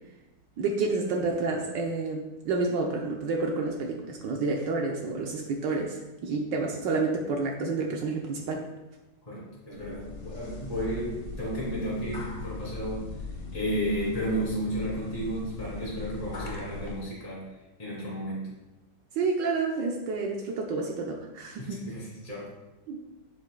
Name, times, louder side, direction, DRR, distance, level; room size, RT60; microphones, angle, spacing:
voice 1, 0.6-8.7 19.1-21.8 22.9-23.0, right 3 dB, 75° right, 1 dB, 1.5 m, -29 dB
voice 2, 9.3-13.1 13.5-17.5 17.8-18.5 21.6-22.5, equal, 20° left, -7 dB, 3.0 m, -33 dB
sound 1, 9.7-17.0, left 2 dB, 45° left, 1.3 m, -39 dB
9.8 x 8.1 x 2.3 m, 1.0 s
omnidirectional pair, 2.0 m